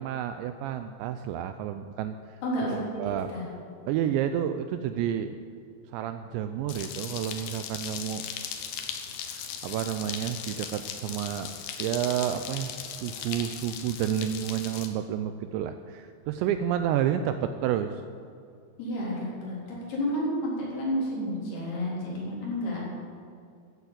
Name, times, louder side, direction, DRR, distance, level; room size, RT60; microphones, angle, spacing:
voice 1, 0.0-2.4 3.0-3.3 3.9-5.4 5.9-8.2 9.2-11.5 11.8-18.0, right 10 dB, 85° right, 9 dB, 2.6 m, -30 dB
voice 2, 2.4-3.0 3.3-3.4 18.8-22.8, equal, 55° left, -5 dB, 5.5 m, -31 dB
sound 1, 6.7-14.9, left 8 dB, 80° left, 2.0 m, -38 dB
14.0 x 8.3 x 8.1 m, 2.3 s
omnidirectional pair, 5.5 m